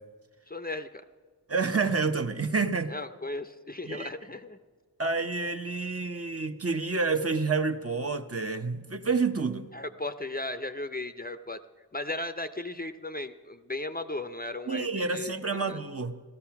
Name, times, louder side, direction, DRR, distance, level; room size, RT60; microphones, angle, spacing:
voice 1, 0.5-1.0 2.9-4.6 9.7-11.6 11.9-15.3 15.7-15.8, left 2 dB, 25° left, 10 dB, 0.6 m, -36 dB
voice 2, 1.5-2.9 3.8-4.1 5.0-9.7 14.7-16.2, right 4 dB, 40° right, 6 dB, 0.9 m, -29 dB
15.5 x 13.0 x 5.9 m, 1.5 s
wide cardioid pair, 40°, 38 cm